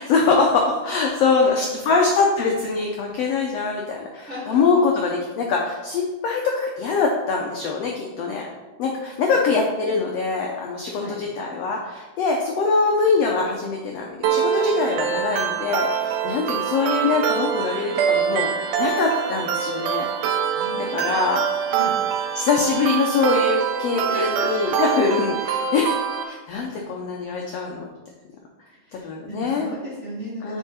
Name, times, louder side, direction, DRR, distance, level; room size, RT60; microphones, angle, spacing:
voice 1, 0.0-8.5 8.8-20.1 20.9-21.6 22.4-26.0 26.2-27.9 28.9-29.7 30.4-30.6, left 4 dB, 75° left, 0 dB, 1.5 m, -23 dB
voice 2, 4.3-4.6 9.3-10.1 10.9-11.2 20.4-21.3 21.7-22.0 24.1-24.8 28.8-30.6, equal, 30° right, -8 dB, 1.4 m, -36 dB
sound 1, 14.2-26.2, right 8 dB, 80° right, 2.2 m, -24 dB
8.5 x 4.6 x 4.2 m, 1.1 s
omnidirectional pair, 3.7 m